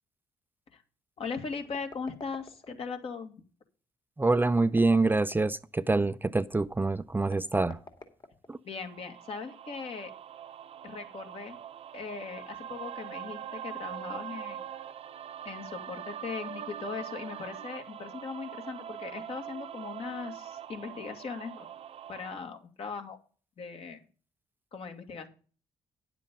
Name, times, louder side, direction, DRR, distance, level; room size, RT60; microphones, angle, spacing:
voice 1, 1.2-3.3 8.6-10.1 10.8-11.6 11.9-14.6 15.4-21.7 22.1-23.2 23.6-24.0 24.7-25.3, left 5 dB, 55° left, 2.1 m, -39 dB
sound 1, 1.5-2.9 4.5-5.6 7.2-8.8, left 3 dB, 40° left, 2.3 m, -49 dB
voice 2, 4.2-7.8 8.5-8.6, right 3 dB, 15° right, 0.5 m, -26 dB
sound 2, 8.8-22.4, right 10 dB, 60° right, 0.9 m, -43 dB
10.0 x 7.5 x 5.2 m
supercardioid pair, 55°, 12 cm